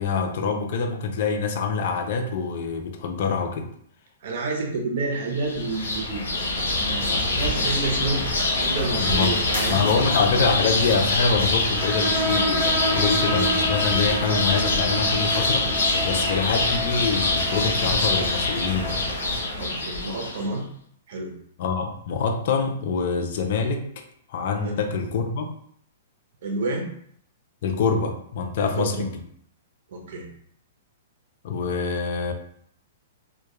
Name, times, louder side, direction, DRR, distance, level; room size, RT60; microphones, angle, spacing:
voice 1, 0.0-3.7 9.0-9.4 9.7-15.7 16.0-19.1 21.6-24.0 24.3-25.5 27.6-29.1 31.4-32.3, left 5 dB, 55° left, 5 dB, 0.4 m, -25 dB
voice 2, 4.2-6.2 6.8-8.2 8.6-9.8 19.5-20.6 21.1-21.3 24.6-24.8 26.4-26.9 28.6-29.0 29.9-30.3, right 3 dB, 60° right, 1 dB, 0.6 m, -29 dB
sound 1, 5.3-20.5, left 2 dB, 85° left, 0.7 m, -25 dB
sound 2, 11.8-19.1, equal, 5° left, 0.7 m, -30 dB
2.2 x 2.2 x 2.9 m, 0.65 s
hypercardioid pair, 155°, 0 cm